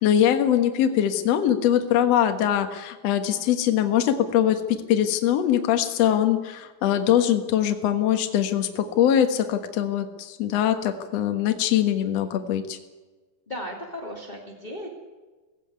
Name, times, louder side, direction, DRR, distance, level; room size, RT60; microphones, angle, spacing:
voice 1, 0.0-4.6 4.9-12.8, left 10 dB, 60° left, 6 dB, 1.8 m, -22 dB
voice 2, 13.5-14.9, equal, 15° left, -1 dB, 1.6 m, -36 dB
17.5 x 16.5 x 9.6 m, 1.3 s
omnidirectional pair, 5.0 m